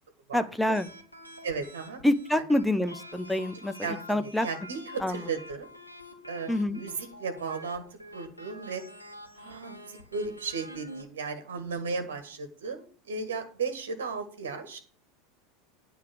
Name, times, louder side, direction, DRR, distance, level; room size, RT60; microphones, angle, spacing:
voice 1, 0.3-0.9 2.0-3.7 4.1-4.5 5.0-5.2 6.5-6.8, left 1 dB, 5° left, 11 dB, 0.9 m, -26 dB
sound 1, 0.6-11.0, left 1 dB, 90° left, 1.4 m, -47 dB
voice 2, 1.4-2.0 3.8-5.7 6.3-7.8 8.1-8.8 9.3-14.8, right 4 dB, 65° right, 7 dB, 1.7 m, -35 dB
9.5 x 5.1 x 8.0 m, 0.41 s
figure-of-eight pair, 80°, 0 cm